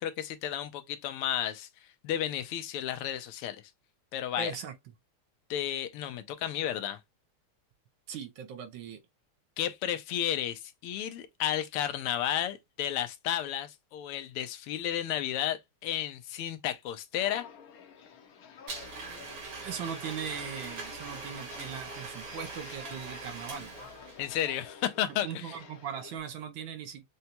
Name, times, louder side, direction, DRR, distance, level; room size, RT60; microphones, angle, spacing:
voice 1, 0.0-3.6 4.1-4.5 5.5-7.0 9.6-17.5 24.2-25.6, left 11 dB, 85° left, 1.6 m, -33 dB
voice 2, 4.4-4.7 8.1-9.0 19.6-23.7 25.0-27.0, right 7 dB, 70° right, 1.3 m, -39 dB
Walk footsteps, 17.1-26.2, left 7 dB, 60° left, 0.9 m, -50 dB
Domestic sounds home sounds, 18.7-24.3, right 3 dB, 90° right, 2.6 m, -42 dB
6.6 x 2.2 x 2.9 m
omnidirectional pair, 2.4 m